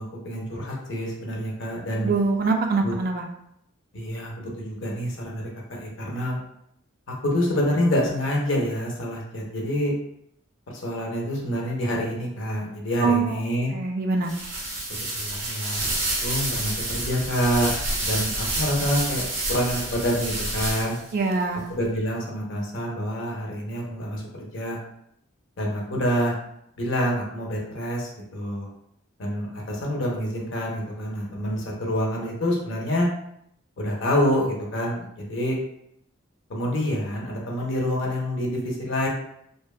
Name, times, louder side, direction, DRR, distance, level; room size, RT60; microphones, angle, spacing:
voice 1, 0.0-2.1 2.8-2.9 3.9-6.4 7.2-9.9 10.7-13.7 14.9-17.7 18.0-20.9 21.7-24.8 25.6-26.4 26.8-28.7 29.2-33.1 33.8-35.6 36.5-39.1, equal, 60° left, -2 dB, 0.5 m, -27 dB
voice 2, 2.0-3.2 13.0-13.3 13.7-14.3 21.1-21.6, right 4 dB, 45° right, 3 dB, 0.3 m, -23 dB
sound 1, 14.2-21.1, right 2 dB, 65° right, 0.9 m, -29 dB
2.6 x 2.1 x 2.3 m, 0.75 s
head